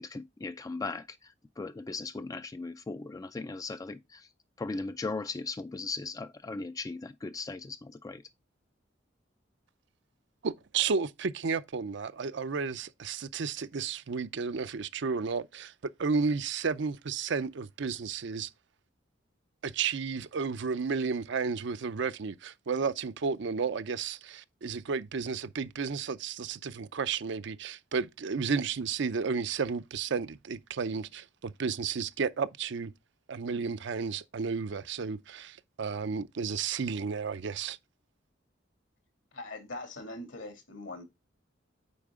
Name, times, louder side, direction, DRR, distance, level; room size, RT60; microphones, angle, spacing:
voice 1, 0.0-4.3 4.6-8.2, left 3 dB, 20° left, 0.3 m, -38 dB
voice 2, 10.4-15.7 16.0-18.5 19.6-32.9 33.3-37.8, right 5 dB, 65° right, 0.5 m, -32 dB
voice 3, 39.3-41.0, left 2 dB, 75° left, 2.2 m, -41 dB
8.4 x 4.7 x 3.6 m
head